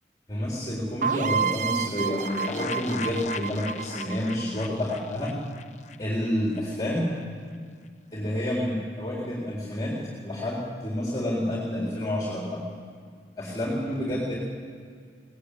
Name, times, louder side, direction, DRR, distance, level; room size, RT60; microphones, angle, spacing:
voice 1, 0.3-5.4 6.0-7.1 8.1-12.6 13.4-14.4, left 1 dB, 20° left, -4 dB, 3.9 m, -29 dB
sound 1, 1.0-4.7, right 6 dB, 45° right, 0.8 m, -30 dB
sound 2, 2.0-6.6 6.9-7.0 7.2-7.3, left 4 dB, 40° left, 1.0 m, -38 dB
23.5 x 18.5 x 8.5 m, 2.1 s
head